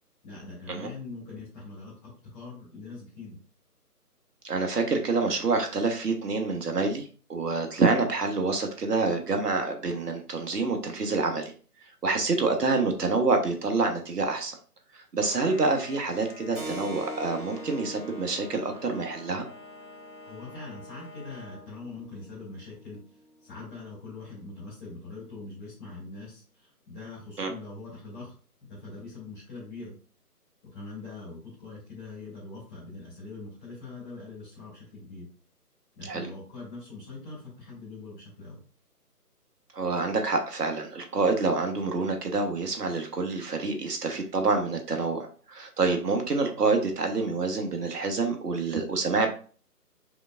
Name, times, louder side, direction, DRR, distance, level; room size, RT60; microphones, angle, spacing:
voice 1, 0.2-3.4 20.2-23.0 23.4-28.3 28.7-29.9 30.7-35.3 36.0-38.6, left 3 dB, 10° left, -9 dB, 1.8 m, -42 dB
voice 2, 4.4-11.5 12.0-14.6 14.9-19.4 27.4-27.5 36.0-36.3 39.7-49.3, right 3 dB, 75° right, 4 dB, 1.2 m, -27 dB
sound 1, 15.2-21.7, left 4 dB, 5° right, 1.3 m, -47 dB
Keyboard (musical), 16.5-24.8, right 1 dB, 55° right, 1.8 m, -44 dB
5.1 x 3.3 x 2.4 m, 0.39 s
figure-of-eight pair, 160°, 48 cm